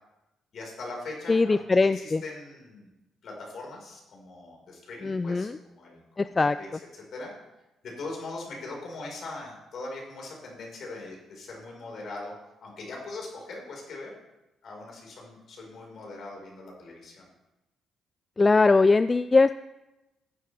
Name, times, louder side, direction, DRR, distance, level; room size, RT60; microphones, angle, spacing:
voice 1, 0.5-2.9 3.2-6.7 6.9-7.3 7.8-12.3 12.6-14.1 14.6-17.3, left 2 dB, 60° left, -1 dB, 4.8 m, -41 dB
voice 2, 1.3-2.2 5.0-5.6 6.2-6.6 18.4-19.6, left 3 dB, 25° left, 13 dB, 0.3 m, -21 dB
15.0 x 10.0 x 3.5 m, 0.97 s
cardioid pair, 90°, 0 cm